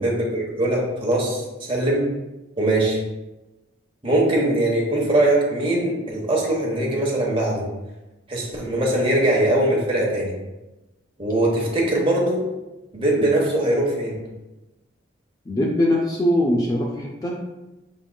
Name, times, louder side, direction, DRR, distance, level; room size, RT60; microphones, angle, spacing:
voice 1, 0.0-2.0 2.6-3.0 4.0-7.6 8.3-10.3 11.2-12.4 12.9-14.2, right 1 dB, 25° right, -3 dB, 1.0 m, -21 dB
voice 2, 15.5-17.4, left 1 dB, 20° left, -1 dB, 0.4 m, -22 dB
5.9 x 3.7 x 2.2 m, 1.0 s
head